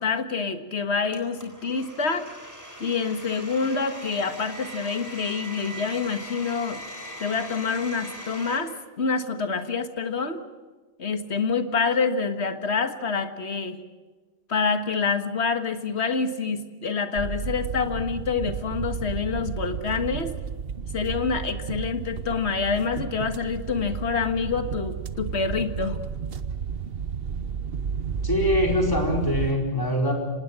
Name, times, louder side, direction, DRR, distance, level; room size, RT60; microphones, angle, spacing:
voice 1, 0.0-2.3 2.8-6.8 7.2-10.4 11.0-13.8 14.5-20.3 20.9-26.0, left 5 dB, 75° left, 8 dB, 1.9 m, -27 dB
Domestic sounds home sounds, 1.1-8.6, equal, 15° right, 4.4 m, -40 dB
sound 1, 17.2-29.5, right 6 dB, 60° right, 1.1 m, -32 dB
voice 2, 28.2-30.1, left 1 dB, 20° left, 1 dB, 4.9 m, -23 dB
25.5 x 19.5 x 7.6 m, 1.3 s
omnidirectional pair, 1.1 m